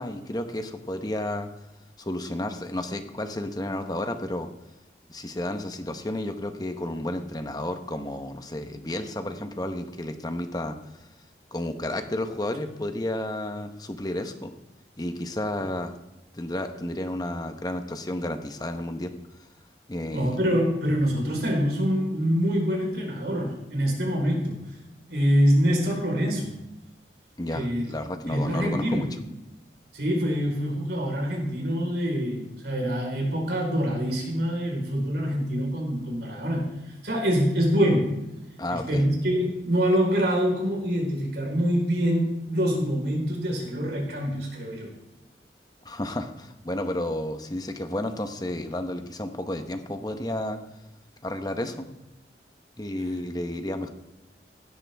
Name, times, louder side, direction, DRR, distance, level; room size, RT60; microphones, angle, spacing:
voice 1, 0.0-1.5 2.0-4.5 5.1-10.8 11.5-14.5 15.0-15.9 16.3-19.1 19.9-20.4 27.4-29.1 38.6-39.0 45.8-50.6 51.2-51.9 52.8-53.9, left 1 dB, 20° left, 7 dB, 1.0 m, -31 dB
voice 2, 20.1-24.6 25.1-26.5 27.5-27.8 28.3-29.1 29.9-36.7 37.0-38.2 38.7-44.9, equal, 70° right, -1 dB, 4.3 m, -25 dB
16.5 x 11.5 x 3.5 m, 0.97 s
head